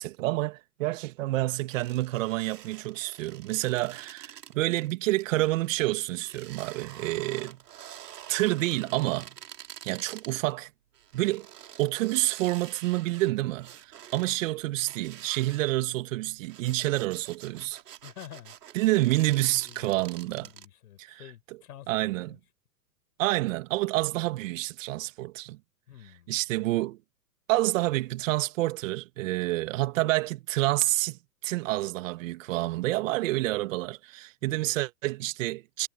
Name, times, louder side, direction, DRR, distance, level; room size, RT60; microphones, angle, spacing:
voice 1, 0.0-7.6 8.3-9.3 9.8-10.7 11.1-11.5 11.8-17.8 18.7-20.5 21.0-21.2 21.9-22.4 23.2-25.6 26.3-27.0 27.5-35.9, right 18 dB, 50° right, 2.2 m, -28 dB
sound 1, 1.7-10.5 10.9-14.4 14.9-15.8 16.4-20.7, right 10 dB, 70° right, 3.8 m, -48 dB
voice 2, 18.0-18.6 19.6-22.4 25.9-26.3 34.4-34.8, left 12 dB, 65° left, 5.2 m, -49 dB
hypercardioid pair, 120°, 49 cm